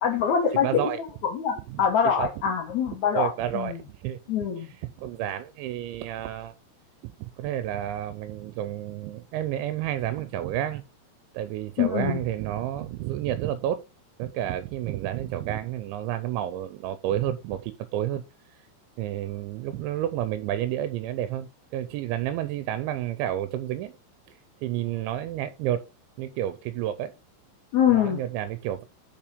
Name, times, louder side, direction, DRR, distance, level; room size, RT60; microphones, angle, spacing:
voice 1, 0.0-0.9 1.2-3.8 4.3-4.7 11.8-12.2 27.7-28.2, left 8 dB, 80° left, 1.6 m, -24 dB
voice 2, 0.6-1.0 1.7-1.8 2.2-2.3 3.1-4.2 4.6-6.5 7.0-10.8 11.3-13.8 14.2-18.2 19.0-24.0 24.3-25.9 26.2-27.1 27.9-28.8, right 12 dB, 85° right, 2.9 m, -30 dB
6.6 x 5.9 x 5.1 m
omnidirectional pair, 5.4 m